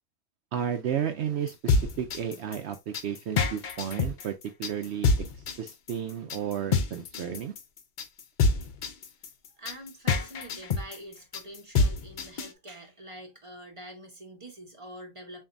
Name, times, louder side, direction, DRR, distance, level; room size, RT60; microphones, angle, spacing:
voice 1, 0.5-5.1 5.6-7.5, right 8 dB, 65° right, 0.7 m, -33 dB
sound 1, 1.5-12.5, left 4 dB, 65° left, 0.5 m, -26 dB
voice 2, 9.5-15.5, right 1 dB, 25° right, 0.8 m, -45 dB
6.9 x 2.6 x 2.5 m
omnidirectional pair, 1.5 m